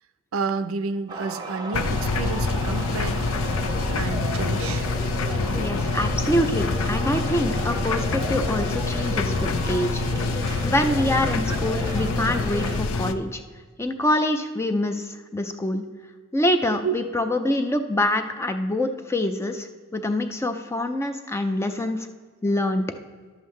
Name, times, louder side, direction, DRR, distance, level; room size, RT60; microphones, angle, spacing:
voice 1, 0.3-3.2 4.0-4.9 11.5-11.6 16.8-17.0 21.8-21.9, right 4 dB, 80° right, 12 dB, 0.5 m, -30 dB
sound 1, 1.1-12.8, right 2 dB, 20° right, 0.7 m, -35 dB
sound 2, 1.7-13.1, left 3 dB, 70° left, 0.5 m, -26 dB
voice 2, 5.5-13.4 13.8-15.8 16.3-19.7 19.9-22.1 22.4-22.8, left 1 dB, 10° left, 7 dB, 0.4 m, -25 dB
11.0 x 7.4 x 3.2 m, 1.5 s
head